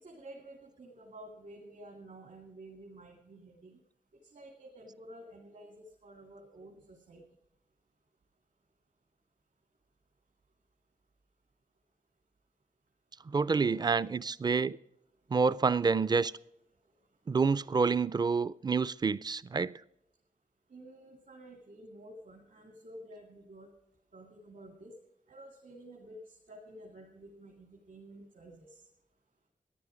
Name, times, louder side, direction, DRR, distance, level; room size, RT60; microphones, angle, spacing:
voice 1, 0.0-3.8 4.3-7.2 20.7-23.7 24.1-24.9 25.3-28.8, right 1 dB, 70° right, 2.4 m, -51 dB
voice 2, 13.3-14.8 15.3-16.3 17.3-19.7, right 5 dB, 30° right, 0.4 m, -28 dB
14.5 x 10.5 x 5.0 m
wide cardioid pair, 130°, 14 cm